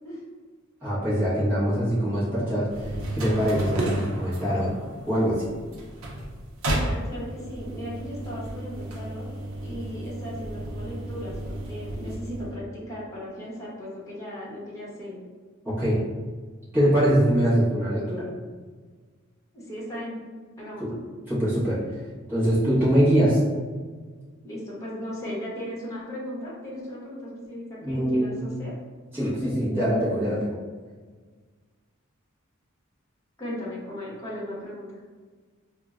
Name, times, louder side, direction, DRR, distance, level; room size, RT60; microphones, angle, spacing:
voice 1, 0.8-4.7 5.1-5.4 15.6-16.0 16.7-18.3 20.8-20.9 21.3-21.8 22.3-23.4 27.8-28.6 29.1-30.6, equal, 10° right, -12 dB, 1.1 m, -23 dB
sound 1, 2.7-12.6, right 1 dB, 75° right, 0.6 m, -33 dB
voice 2, 6.8-9.3 9.6-15.2 17.5-17.6 19.5-20.1 20.6-21.0 24.4-28.7 33.4-35.0, equal, 15° left, -7 dB, 1.0 m, -37 dB
4.4 x 2.1 x 2.4 m, 1.5 s
head